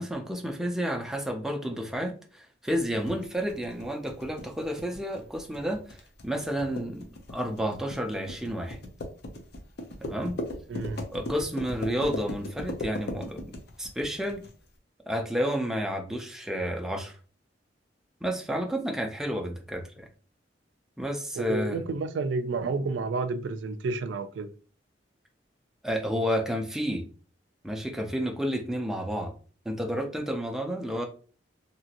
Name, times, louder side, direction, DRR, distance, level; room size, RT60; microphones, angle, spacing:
voice 1, 0.0-6.0 6.2-8.8 10.1-10.4 11.1-13.5 13.8-14.4 15.1-17.2 18.2-20.1 21.0-21.8 25.8-27.1 27.6-29.3 29.7-31.1, equal, 5° right, 0.5 m, -31 dB
sound 1, 2.9-14.5, left 1 dB, 60° left, 0.6 m, -38 dB
voice 2, 10.7-11.0 21.3-24.5, right 3 dB, 90° right, 0.3 m, -30 dB
2.9 x 2.5 x 2.8 m
head